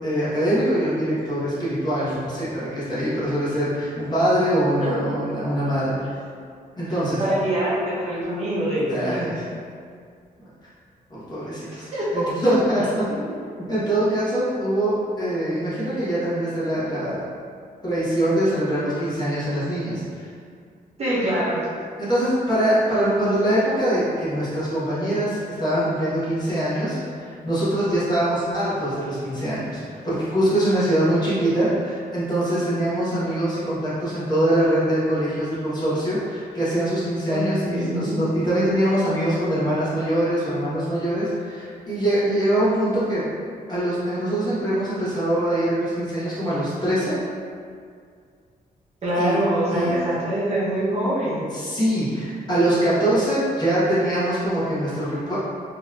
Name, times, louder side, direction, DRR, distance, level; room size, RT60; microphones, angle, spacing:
voice 1, 0.0-6.0 6.8-7.2 8.9-9.5 11.1-13.1 13.7-17.2 17.8-20.3 22.0-43.2 43.7-47.2 49.2-49.4 49.7-49.9 51.5-55.4, right 1 dB, 25° left, -10 dB, 1.1 m, -23 dB
voice 2, 4.8-5.1 6.9-9.3 11.7-12.3 13.2-13.3 21.0-21.7 37.3-37.4 37.7-38.2 49.0-51.5, right 1 dB, 40° right, -8 dB, 0.8 m, -25 dB
3.9 x 2.9 x 2.4 m, 2.2 s
wide cardioid pair, 150°, 16 cm